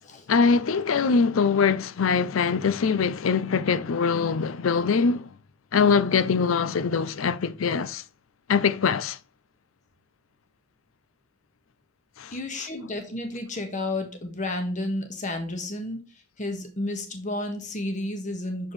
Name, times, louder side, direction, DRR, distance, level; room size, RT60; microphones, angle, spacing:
voice 1, 0.3-5.3 5.7-8.0 8.5-9.2 12.2-12.3, left 5 dB, 80° left, 0.5 m, -23 dB
voice 2, 12.3-16.1 16.4-18.7, left 1 dB, 40° left, 1.4 m, -31 dB
6.8 x 5.3 x 3.1 m
head